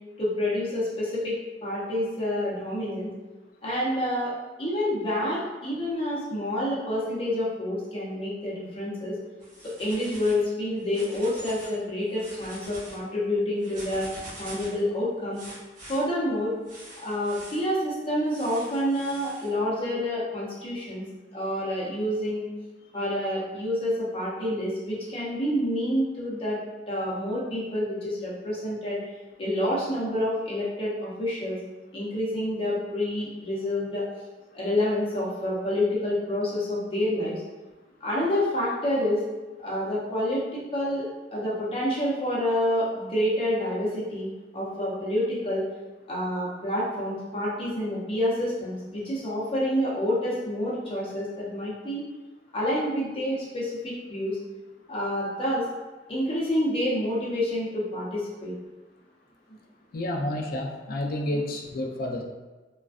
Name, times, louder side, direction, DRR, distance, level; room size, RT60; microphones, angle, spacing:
voice 1, 0.2-1.3 1.6-3.1 3.6-4.3 4.6-9.2 9.8-14.1 14.4-15.4 15.9-16.5 17.0-21.0 21.3-22.5 22.9-26.6 26.9-29.0 29.4-31.6 31.9-34.0 34.5-37.4 38.0-39.2 39.6-45.6 46.1-52.0 52.5-54.4 54.9-55.6 56.1-58.5 61.3-61.4, left 1 dB, 35° left, -7 dB, 0.7 m, -28 dB
sound 1, 9.4-10.4 10.8-11.8 12.1-13.0 13.6-14.8 15.3-16.0 16.6-17.6 18.3-19.5, right 1 dB, 50° right, 0.9 m, -44 dB
voice 2, 59.9-62.2, left 1 dB, 55° left, 1 dB, 0.4 m, -30 dB
2.4 x 2.2 x 2.4 m, 1.2 s
head